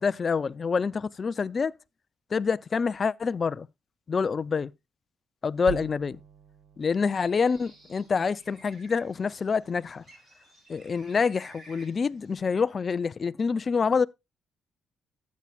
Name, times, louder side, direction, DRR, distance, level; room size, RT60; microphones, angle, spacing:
voice 1, 0.0-1.7 2.3-3.7 4.1-4.7 5.4-6.2 6.8-10.0 10.7-14.1, left 5 dB, 40° left, 0.4 m, -27 dB
sound 1, 5.6-10.0, right 8 dB, 70° right, 1.2 m, -45 dB
Bird, 6.9-12.4, right 1 dB, 30° right, 6.0 m, -55 dB
13.0 x 8.3 x 2.4 m
cardioid pair, 90°, 0 cm